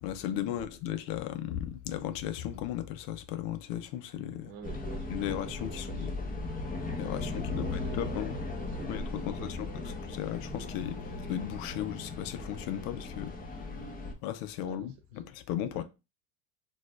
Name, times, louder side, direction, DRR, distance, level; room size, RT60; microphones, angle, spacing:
voice 1, 0.0-4.5 5.1-6.1 7.0-8.3 8.9-13.9 14.2-15.8, left 11 dB, 60° left, 0.6 m, -36 dB
voice 2, 4.4-6.1 7.0-10.0 12.7-13.0 14.6-14.9 15.7-15.8, right 7 dB, 60° right, 1.1 m, -48 dB
sound 1, 4.6-14.1, left 3 dB, 20° left, 0.9 m, -37 dB
4.0 x 2.4 x 2.4 m
hypercardioid pair, 90°, 39 cm